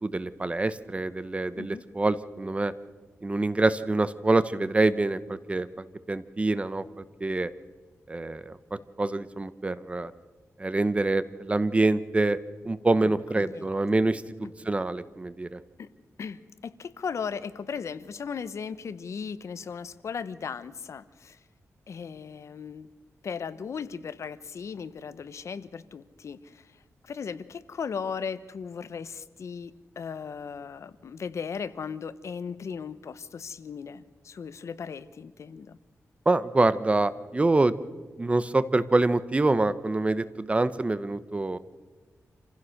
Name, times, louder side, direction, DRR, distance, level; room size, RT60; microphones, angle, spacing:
voice 1, 0.0-2.7 3.2-7.5 8.1-10.1 10.6-12.4 12.6-14.2 14.6-15.6 36.3-37.7 38.2-41.6, right 2 dB, 25° right, 15 dB, 0.8 m, -26 dB
voice 2, 13.0-13.7 14.4-14.5 15.8-15.9 16.2-21.4 21.9-22.9 23.2-35.8, left 6 dB, 65° left, 15 dB, 0.8 m, -37 dB
27.5 x 15.5 x 6.5 m, 1.3 s
wide cardioid pair, 110°, 5 cm